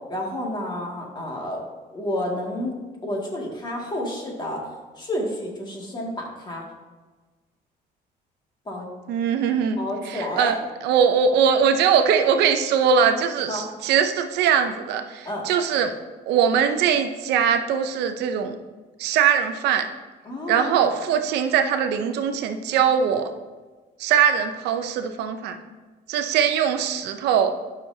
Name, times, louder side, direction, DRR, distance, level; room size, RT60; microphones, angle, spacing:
voice 1, 0.1-1.6 1.9-2.7 3.0-4.6 5.0-6.6 8.7-8.9 9.8-10.6 13.5-13.6 15.2-15.5 20.3-20.7, left 1 dB, 25° left, -1 dB, 2.2 m, -30 dB
voice 2, 9.1-9.8 10.0-10.6 10.8-15.9 16.3-18.6 19.0-19.9 20.5-23.3 24.0-25.6 26.1-27.5, right 7 dB, 85° right, 7 dB, 0.7 m, -21 dB
12.5 x 6.3 x 2.8 m, 1.3 s
cardioid pair, 110°, 17 cm